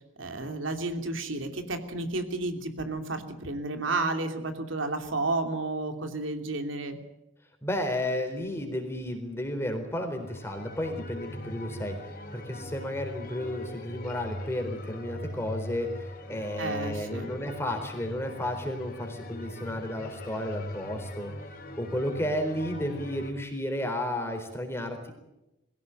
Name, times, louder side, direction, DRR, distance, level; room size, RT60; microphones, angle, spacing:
voice 1, 0.2-7.0 16.6-17.3, right 2 dB, 85° right, 6 dB, 2.9 m, -31 dB
voice 2, 7.6-21.3 21.8-25.1, left 1 dB, 15° left, 5 dB, 4.1 m, -32 dB
sound 1, 10.2-23.3, left 1 dB, 50° left, 2.8 m, -41 dB
22.5 x 16.5 x 9.2 m, 0.90 s
head